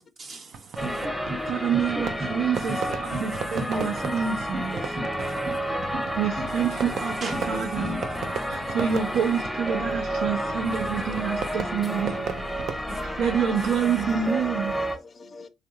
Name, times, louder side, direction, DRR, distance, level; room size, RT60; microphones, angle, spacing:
voice 1, 0.2-1.0 3.0-3.2 3.7-3.9 5.2-5.3 6.5-6.6 7.2-7.4 8.0-8.5 12.9-13.0, right 3 dB, 50° right, 1.0 m, -40 dB
Fireworks, 0.5-12.8, right 6 dB, 65° right, 0.5 m, -37 dB
sound 1, 0.8-15.0, equal, ahead, 0.7 m, -31 dB
sound 2, 0.8-1.4 1.7-2.4 2.7-3.3 3.6-4.2 4.5-5.1 5.4-6.1 6.4-7.0 7.3-8.0, right 1 dB, 30° right, 1.0 m, -34 dB
voice 2, 1.5-4.8 6.2-8.0 8.5-12.3 13.0-14.8, right 7 dB, 90° right, 0.8 m, -27 dB
voice 3, 9.7-10.3 12.6-15.5, left 4 dB, 40° left, 0.5 m, -46 dB
3.4 x 2.5 x 2.9 m
cardioid pair, 80°, 0 cm